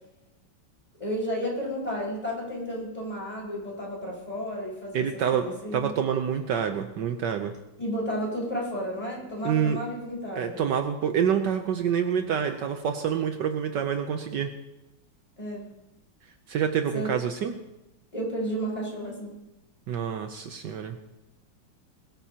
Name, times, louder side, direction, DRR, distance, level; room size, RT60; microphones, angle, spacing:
voice 1, 1.0-5.9 7.8-10.6 15.4-15.6 16.9-17.1 18.1-19.4, equal, 20° left, -5 dB, 5.6 m, -32 dB
voice 2, 4.9-5.5 5.7-7.5 9.4-9.8 10.4-14.5 16.5-17.5 19.9-21.0, right 8 dB, 70° right, 6 dB, 1.4 m, -27 dB
21.5 x 14.5 x 2.9 m, 0.96 s
omnidirectional pair, 2.1 m